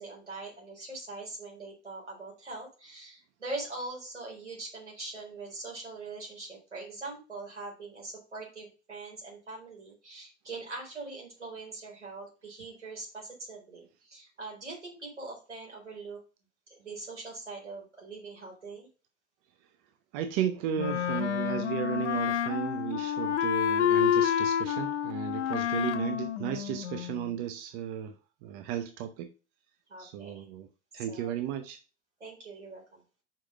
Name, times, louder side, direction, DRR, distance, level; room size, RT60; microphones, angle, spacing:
voice 1, 0.0-16.2 16.7-18.9 29.9-30.5 31.0-31.3 32.2-33.0, right 3 dB, 90° right, 4.2 m, -42 dB
voice 2, 20.1-28.2 28.4-29.3 30.0-30.7 30.9-31.8, right 10 dB, 50° right, 0.9 m, -34 dB
Wind instrument woodwind instrument, 20.8-27.4, left 9 dB, 85° left, 0.7 m, -29 dB
5.8 x 5.0 x 6.1 m
figure-of-eight pair, 85°, 34 cm